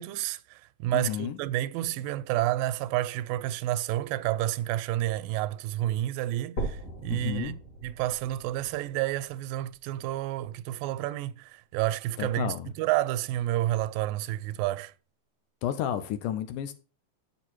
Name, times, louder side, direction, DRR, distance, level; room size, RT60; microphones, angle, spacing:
voice 1, 0.0-7.5 7.8-14.9, right 14 dB, 85° right, 2.2 m, -30 dB
voice 2, 0.9-1.4 7.1-7.6 12.2-12.7 15.6-16.7, left 10 dB, 75° left, 2.2 m, -31 dB
sound 1, 6.6-10.6 11.1-11.2 11.8-11.9 12.2-12.3 13.2-13.3, right 2 dB, 50° left, 2.4 m, -40 dB
7.5 x 6.9 x 4.5 m
omnidirectional pair, 3.9 m